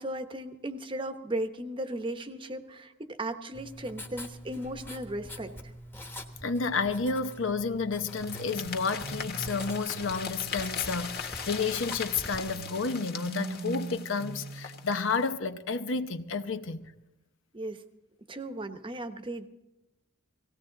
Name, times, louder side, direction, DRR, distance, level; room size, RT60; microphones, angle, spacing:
voice 1, 0.0-5.7 17.5-17.8 18.3-19.5, right 1 dB, 25° right, 0.9 m, -36 dB
Writing, 3.5-12.5, equal, 10° left, 1.3 m, -45 dB
voice 2, 6.4-16.9, left 4 dB, 75° left, 0.8 m, -31 dB
sound 1, 8.1-15.3, left 6 dB, 50° left, 1.7 m, -40 dB
sound 2, 8.2-11.3 12.4-15.4, right 3 dB, 85° right, 0.8 m, -42 dB
18.5 x 16.5 x 3.9 m
head